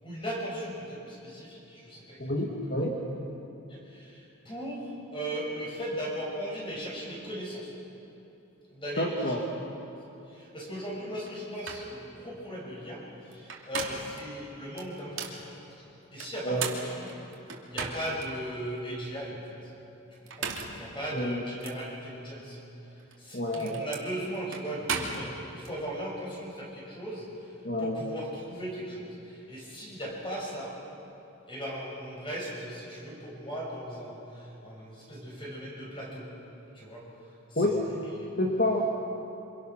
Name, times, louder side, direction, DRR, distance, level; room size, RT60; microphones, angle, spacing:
voice 1, 0.0-2.6 3.7-7.7 8.7-9.3 10.3-15.5 16.1-17.1 17.6-19.4 20.2-20.5 20.8-22.6 23.2-27.3 27.8-30.7 31.5-36.3 36.7-37.0 37.5-37.8 38.0-38.3, equal, 25° left, -3 dB, 6.6 m, -38 dB
voice 2, 2.2-3.0 9.0-9.4 16.4-16.7 21.1-21.5 23.3-23.8 27.6-28.0 37.6-37.8 38.4-38.9, left 1 dB, 45° left, -1 dB, 1.9 m, -28 dB
sound 1, 11.3-11.4 11.6-11.9 13.3-14.2 14.8-15.4 16.2-18.3 18.8-18.9 20.1-20.8 21.6-21.8 23.0-25.7, right 5 dB, 70° right, 2.7 m, -36 dB
27.5 x 26.5 x 6.1 m, 3.0 s
head